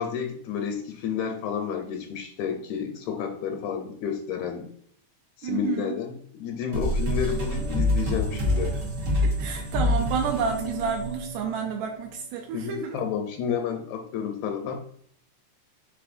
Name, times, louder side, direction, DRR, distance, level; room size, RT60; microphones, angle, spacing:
voice 1, 0.0-4.7 5.4-8.8 12.5-14.9, left 7 dB, 80° left, 3 dB, 1.8 m, -31 dB
voice 2, 5.4-6.0 9.2-13.0, right 6 dB, 80° right, 1 dB, 1.8 m, -30 dB
sound 1, 6.7-12.0, left 1 dB, 60° right, 1.0 m, -27 dB
4.8 x 3.6 x 2.5 m, 0.62 s
omnidirectional pair, 3.4 m